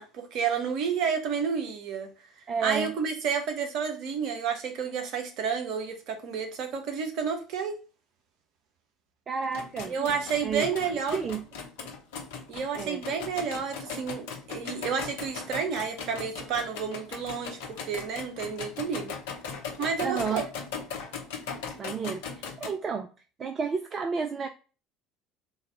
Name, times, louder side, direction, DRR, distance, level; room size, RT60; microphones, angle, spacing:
voice 1, 0.0-2.1 2.6-7.7 9.9-11.2 12.5-19.1 19.8-20.4, right 6 dB, 55° right, 5 dB, 1.0 m, -30 dB
voice 2, 2.5-2.9 9.3-9.9 10.4-11.4 12.7-13.0 20.0-20.5 21.8-23.1 23.4-24.5, right 5 dB, 35° right, 5 dB, 0.4 m, -31 dB
sound 1, 9.4-22.7, left 5 dB, 65° left, 0.9 m, -39 dB
3.9 x 2.6 x 4.3 m, 0.35 s
figure-of-eight pair, 65°, 0 cm